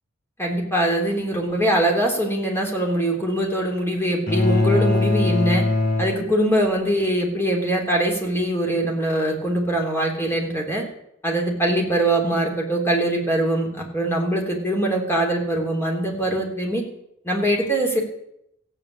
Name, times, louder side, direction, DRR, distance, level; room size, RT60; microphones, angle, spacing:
voice 1, 0.4-5.6 6.0-10.8 11.2-16.8 17.2-18.0, right 1 dB, 10° left, 1 dB, 3.3 m, -22 dB
sound 1, 4.3-6.8, left 2 dB, 45° left, 3.2 m, -21 dB
15.5 x 8.2 x 8.6 m, 0.79 s
head